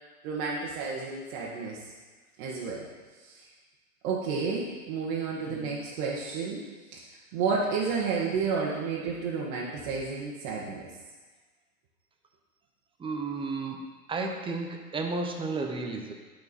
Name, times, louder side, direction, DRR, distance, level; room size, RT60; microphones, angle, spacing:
voice 1, 0.2-1.8 2.4-2.9 3.2-3.4 4.0-6.6 6.9-7.0 7.3-10.9, right 5 dB, 45° right, -5 dB, 1.5 m, -31 dB
voice 2, 5.5-5.8 13.0-13.8 14.1-16.1, right 3 dB, 10° right, 3 dB, 0.7 m, -33 dB
10.5 x 4.7 x 4.3 m, 1.3 s
hypercardioid pair, 110°, 45 cm